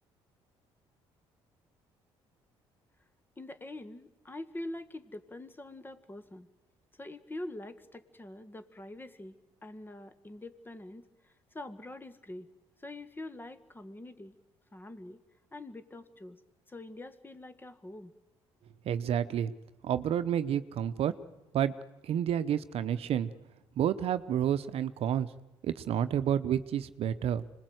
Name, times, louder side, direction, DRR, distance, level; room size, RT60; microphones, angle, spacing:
voice 1, 3.4-6.5 7.0-9.4 9.6-12.5 12.8-14.4 14.7-15.2 15.5-16.4 16.7-18.1, left 1 dB, 20° left, 11 dB, 1.8 m, -44 dB
voice 2, 18.8-19.5 19.8-21.1 21.5-21.7 22.0-23.3 23.8-25.3 25.6-27.4, right 9 dB, 65° right, 13 dB, 0.9 m, -29 dB
25.5 x 20.5 x 8.0 m, 1.1 s
supercardioid pair, 75°, 11 cm